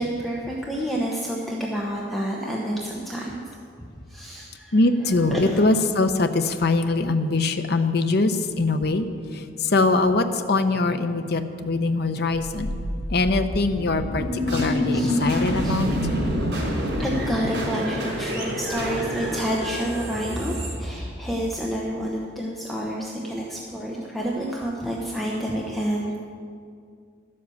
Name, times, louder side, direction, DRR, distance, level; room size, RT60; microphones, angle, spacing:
voice 1, 0.0-3.4 4.1-5.8 14.9-15.1 15.6-15.8 17.0-26.2, equal, ahead, -3 dB, 1.0 m, -29 dB
voice 2, 4.7-9.1 9.7-12.7 13.1-14.2 14.5-15.9, left 3 dB, 60° left, 8 dB, 0.8 m, -22 dB
sound 1, 12.5-21.5, equal, 85° right, 3.6 m, -27 dB
12.0 x 7.6 x 7.1 m, 2.2 s
head